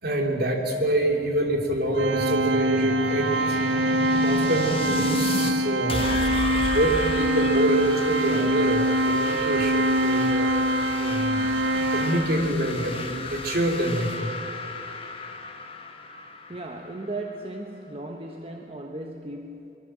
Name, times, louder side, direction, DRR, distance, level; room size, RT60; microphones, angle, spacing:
voice 1, 0.0-3.6 4.1-6.1 6.7-10.5 11.0-11.5 11.8-14.4, right 1 dB, 50° right, 2 dB, 3.2 m, -26 dB
sound 1, 1.0-5.5 5.9-17.5, left 3 dB, 30° left, 1.7 m, -34 dB
Organ, 1.9-12.7, right 1 dB, 65° right, 0.8 m, -24 dB
voice 2, 16.5-19.8, right 2 dB, 30° right, 3 dB, 1.2 m, -36 dB
23.5 x 23.0 x 7.6 m, 3.0 s
head